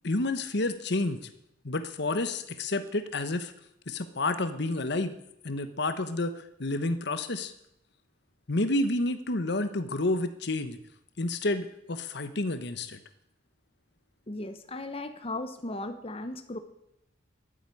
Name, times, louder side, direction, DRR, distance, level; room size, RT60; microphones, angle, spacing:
voice 1, 0.0-1.2 1.6-3.5 3.9-5.2 5.4-7.5 8.5-10.8 11.2-13.0, left 2 dB, 60° left, 11 dB, 1.1 m, -30 dB
voice 2, 14.3-16.6, left 2 dB, 30° left, 8 dB, 1.1 m, -36 dB
13.0 x 8.1 x 9.8 m, 0.80 s
head